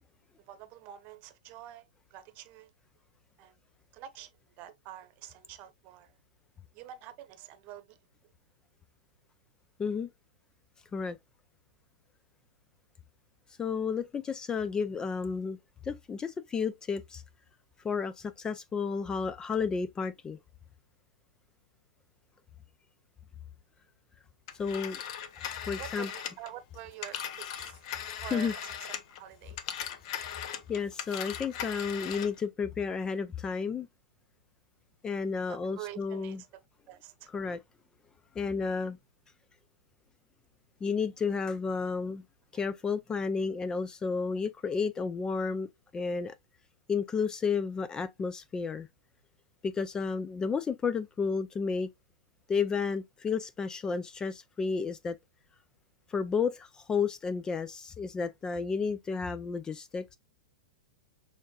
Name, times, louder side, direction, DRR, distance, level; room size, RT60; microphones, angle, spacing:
voice 1, 0.5-1.9 2.1-2.7 3.4-3.5 3.9-4.3 4.6-6.2 6.7-8.0 25.8-27.8 28.2-30.0 35.5-36.4 36.9-37.3, right 12 dB, 40° right, 0.9 m, -47 dB
voice 2, 13.6-15.6 15.8-17.2 17.8-20.4 24.5-25.0 25.7-26.1 28.3-28.5 30.4-33.9 35.0-36.4 37.3-37.6 38.4-39.0 40.8-42.2 42.5-45.7 45.9-46.3 46.9-48.9 49.6-51.9 52.5-55.2 56.1-60.2, left 5 dB, 15° left, 0.3 m, -32 dB
Telephone, 24.5-29.2 29.5-32.4, left 9 dB, 50° left, 0.8 m, -39 dB
6.3 x 3.4 x 2.3 m
figure-of-eight pair, 105°, 4 cm